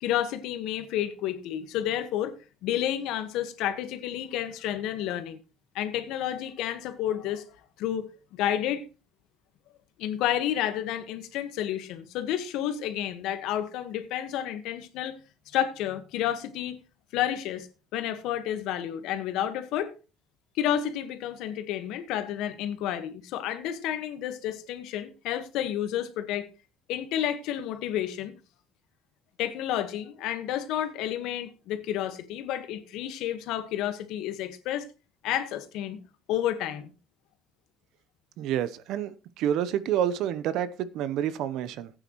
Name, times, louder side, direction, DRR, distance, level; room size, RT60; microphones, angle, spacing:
voice 1, 0.0-2.3 2.6-5.4 5.7-7.4 7.8-8.1 8.3-8.8 10.0-15.1 15.5-16.8 17.1-17.7 17.9-19.9 20.6-26.5 26.9-28.3 29.4-34.8 35.2-36.0 36.3-36.9, left 11 dB, 75° left, 1.5 m, -30 dB
voice 2, 38.4-41.9, right 10 dB, 70° right, 0.9 m, -28 dB
15.5 x 8.9 x 3.1 m
cardioid pair, 110°, 0 cm